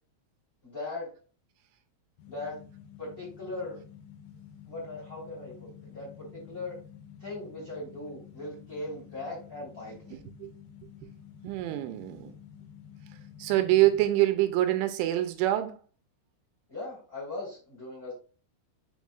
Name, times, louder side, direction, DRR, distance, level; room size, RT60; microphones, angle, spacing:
voice 1, 0.6-1.1 2.3-2.6 3.0-3.8 4.7-6.8 7.2-10.2 16.7-18.1, left 2 dB, 20° left, 3.2 m, -39 dB
sound 1, 2.2-14.1, left 9 dB, 70° left, 2.4 m, -50 dB
voice 2, 11.4-12.3 13.4-15.7, right 15 dB, 85° right, 3.0 m, -25 dB
7.2 x 5.9 x 2.3 m
omnidirectional pair, 5.5 m